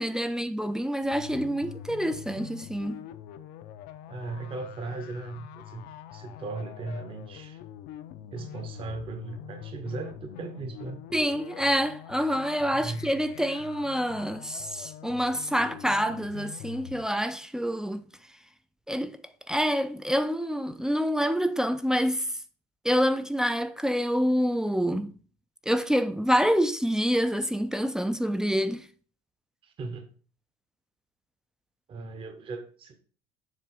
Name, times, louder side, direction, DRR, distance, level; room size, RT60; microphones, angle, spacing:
voice 1, 0.0-3.0 11.1-18.0 18.9-19.2 19.5-22.3 22.8-25.1 25.7-28.9, equal, 5° right, 0.3 m, -27 dB
sound 1, 1.0-17.0, left 10 dB, 65° left, 0.6 m, -44 dB
voice 2, 4.1-5.8 6.1-7.6 8.3-11.0 12.7-13.1 29.6-30.1 31.9-33.0, right 3 dB, 30° right, 0.8 m, -37 dB
7.4 x 2.9 x 6.1 m
cardioid pair, 140°, 18 cm